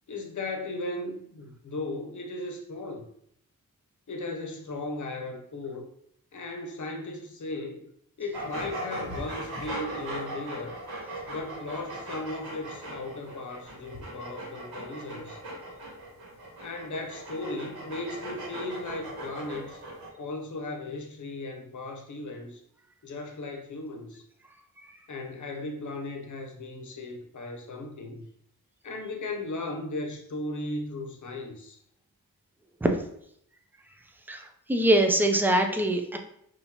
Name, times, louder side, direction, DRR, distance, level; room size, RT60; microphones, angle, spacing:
voice 1, 0.1-3.1 4.1-5.9 6.3-7.9 8.2-10.8 11.3-15.4 16.6-19.8 20.2-22.6 23.0-24.2 25.1-28.3 28.8-31.8, left 2 dB, 55° left, 3 dB, 0.7 m, -36 dB
sound 1, 8.3-20.1, right 1 dB, 85° right, 1.5 m, -38 dB
voice 2, 34.3-36.2, right 1 dB, 5° right, 4 dB, 0.3 m, -23 dB
5.6 x 2.7 x 2.8 m, 0.70 s
wide cardioid pair, 175°, 36 cm